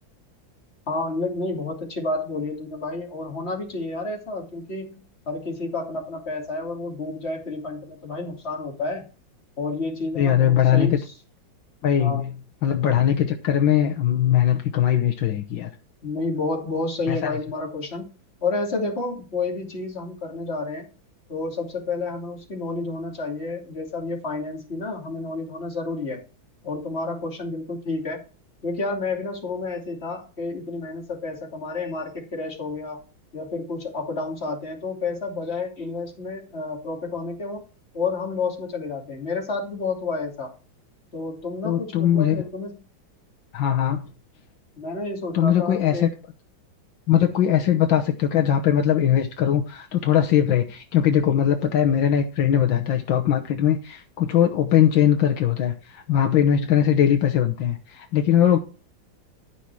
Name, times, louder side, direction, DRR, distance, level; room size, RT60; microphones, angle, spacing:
voice 1, 0.9-9.1 9.6-11.0 12.0-12.2 16.0-18.1 18.4-20.9 21.3-26.2 26.6-28.2 28.6-33.0 33.3-37.6 37.9-40.5 41.1-42.8 44.8-46.1, left 3 dB, 30° left, 2.9 m, -30 dB
voice 2, 10.2-11.0 11.8-12.3 12.6-15.7 17.1-17.4 41.6-42.4 43.5-44.0 45.3-46.1 47.1-58.6, left 10 dB, 75° left, 1.7 m, -20 dB
13.5 x 5.9 x 4.8 m
omnidirectional pair, 2.1 m